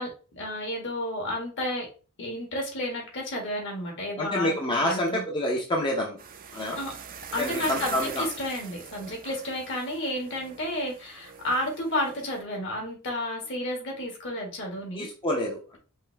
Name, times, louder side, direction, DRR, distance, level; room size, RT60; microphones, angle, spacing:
voice 1, 0.0-1.9 2.2-5.2 6.8-6.9 7.3-15.1, left 1 dB, 55° left, 1 dB, 1.8 m, -32 dB
voice 2, 4.2-6.2 6.5-6.8 7.4-8.3 14.9-15.8, left 1 dB, 20° left, -1 dB, 0.7 m, -28 dB
sound 1, 6.2-12.4, right 6 dB, 40° right, 0.6 m, -42 dB
5.5 x 2.7 x 3.4 m, 0.36 s
head